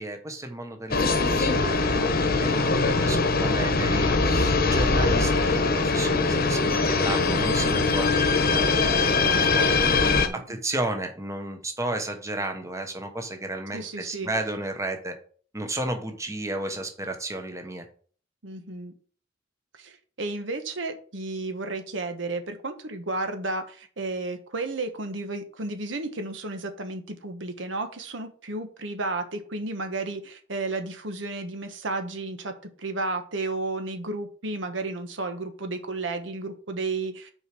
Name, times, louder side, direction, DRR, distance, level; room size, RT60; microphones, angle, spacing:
voice 1, 0.0-9.7 10.3-15.1 15.5-17.9, right 2 dB, 15° right, 5 dB, 1.1 m, -33 dB
sound 1, 0.9-10.3, left 3 dB, 50° left, 1.1 m, -22 dB
voice 2, 10.0-10.4 13.7-14.3 18.4-18.9 19.7-37.3, right 2 dB, 70° right, 7 dB, 1.2 m, -32 dB
6.6 x 4.7 x 6.0 m, 0.43 s
head